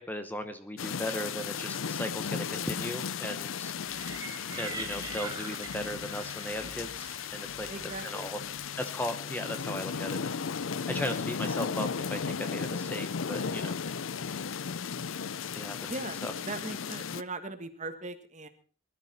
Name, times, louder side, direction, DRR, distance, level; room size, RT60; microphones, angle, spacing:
voice 1, 0.1-3.7 4.6-7.7 8.0-8.4 8.8-10.2 10.6-13.8 15.5-15.9 16.2-16.3, left 1 dB, 10° left, 9 dB, 1.0 m, -37 dB
sound 1, 0.8-17.2, left 6 dB, 85° left, 0.6 m, -35 dB
sound 2, 3.8-8.7, right 4 dB, 20° right, 2.3 m, -44 dB
voice 2, 7.7-8.3 15.8-16.2 16.5-18.5, right 2 dB, 35° right, 8 dB, 1.6 m, -39 dB
20.5 x 12.5 x 4.3 m, 0.40 s
head